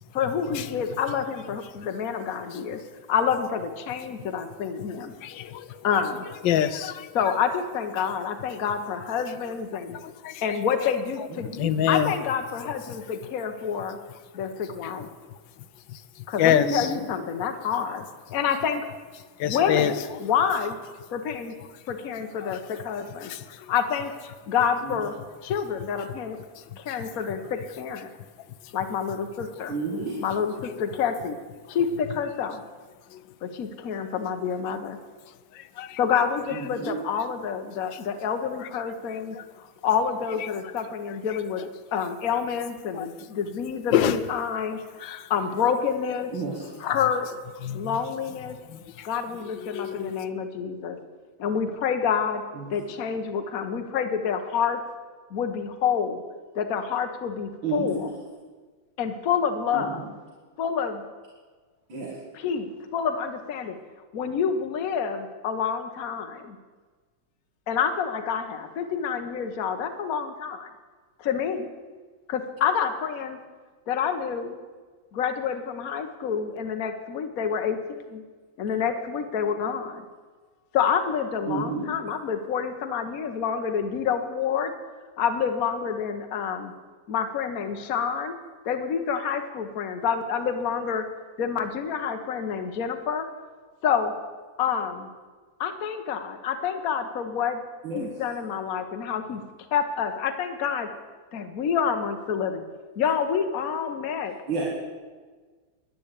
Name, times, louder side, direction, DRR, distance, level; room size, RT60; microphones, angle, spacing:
voice 1, 0.1-2.8 3.1-5.1 5.8-6.2 7.1-10.0 10.4-11.5 11.9-14.0 14.3-15.1 16.3-18.0 18.3-18.8 19.5-20.8 21.1-21.5 21.9-23.3 23.7-24.1 24.5-25.2 25.4-26.4 26.8-28.1 28.7-29.7 30.2-31.4 31.7-32.6 33.4-35.0 36.0-41.6 41.9-44.8 45.1-46.3 46.8-47.3 47.7-48.6 49.0-51.0 51.4-52.4 52.7-54.8 55.3-56.2 56.5-58.1 59.0-60.1 60.6-61.1 62.3-63.8 64.1-66.6 67.7-70.7 71.2-71.7 72.3-73.4 73.9-74.6 75.1-78.2 78.6-80.0 80.7-84.7 85.2-86.7 87.1-88.3 88.6-91.0 91.4-93.3 93.8-94.1 94.6-95.1 95.6-97.6 97.9-99.4 99.7-100.9 101.3-102.6 103.0-104.4, left 7 dB, 55° left, 7 dB, 1.3 m, -28 dB
voice 2, 5.2-5.8 6.4-7.1 9.7-10.4 11.5-12.1 12.9-13.0 14.8-14.9 15.9-16.9 19.4-19.9 22.4-22.6 23.2-23.7 26.6-27.0 28.6-28.7 30.6-30.8 33.1-33.3 35.5-36.0 37.9-38.0 38.6-38.7 39.1-39.5 40.4-40.5 42.9-43.1 43.9-44.2 45.0-45.3 47.6-48.0 48.7-49.1 49.6-50.2, left 10 dB, 80° left, 13 dB, 1.4 m, -27 dB
voice 3, 16.6-17.0 24.8-24.9 29.7-30.2 36.5-37.0 46.3-46.7 52.5-52.8 57.6-58.0 59.7-60.1 61.9-62.1 81.5-81.9 97.8-98.1 104.5-104.7, right 4 dB, 80° right, -5 dB, 2.9 m, -31 dB
11.0 x 10.0 x 8.3 m, 1.4 s
omnidirectional pair, 2.1 m